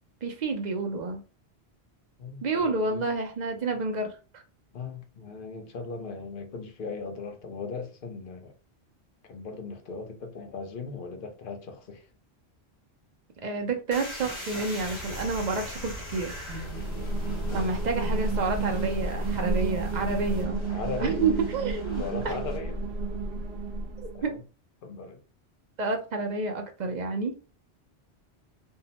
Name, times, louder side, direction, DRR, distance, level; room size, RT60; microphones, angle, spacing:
voice 1, 0.2-1.2 2.4-4.2 13.4-16.3 17.5-20.6 21.0-22.4 24.2-24.3 25.8-27.3, right 3 dB, 55° right, 0.5 m, -29 dB
voice 2, 2.2-3.1 4.7-8.5 9.2-12.1 17.5-17.8 20.7-21.2 22.0-22.8 24.1-24.4 24.8-25.2, left 4 dB, 60° left, 0.7 m, -38 dB
sound 1, 13.9-22.6, left 1 dB, 30° left, 1.0 m, -43 dB
sound 2, 14.8-20.5, right 1 dB, 90° left, 1.0 m, -39 dB
sound 3, 16.5-24.3, right 3 dB, 85° right, 0.9 m, -31 dB
2.7 x 2.1 x 2.8 m
omnidirectional pair, 1.1 m